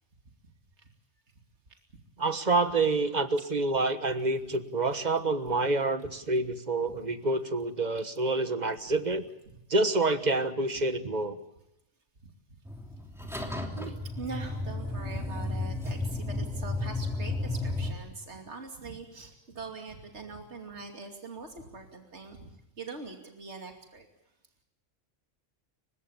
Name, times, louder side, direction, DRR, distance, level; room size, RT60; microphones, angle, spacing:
voice 1, 2.2-9.2 9.7-11.4 13.8-14.0, right 2 dB, 35° right, 10 dB, 1.5 m, -28 dB
sound 1, 12.7-17.9, left 2 dB, ahead, 3.2 m, -33 dB
voice 2, 14.2-22.5 22.8-24.0, right 4 dB, 70° right, 3 dB, 2.9 m, -43 dB
30.0 x 17.0 x 7.3 m, 0.92 s
omnidirectional pair, 1.2 m